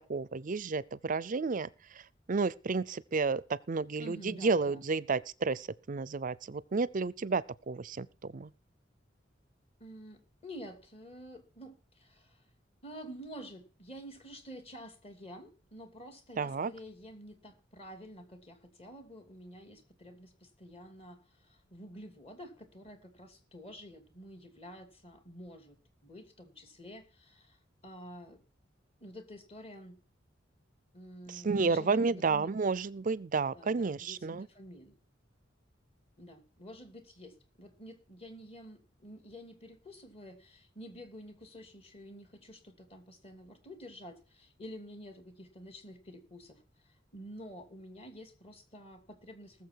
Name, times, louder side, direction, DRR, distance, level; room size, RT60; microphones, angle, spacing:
voice 1, 0.1-1.7 2.3-3.4 3.7-8.5 16.4-16.7 31.3-34.5, right 4 dB, 45° right, 0.5 m, -31 dB
voice 2, 4.0-4.8 5.1-5.2 9.8-12.5 12.8-25.8 26.0-28.4 29.0-30.0 30.9-32.5 33.5-34.9 36.2-49.7, equal, 35° left, 2.7 m, -49 dB
20.0 x 7.1 x 4.6 m
head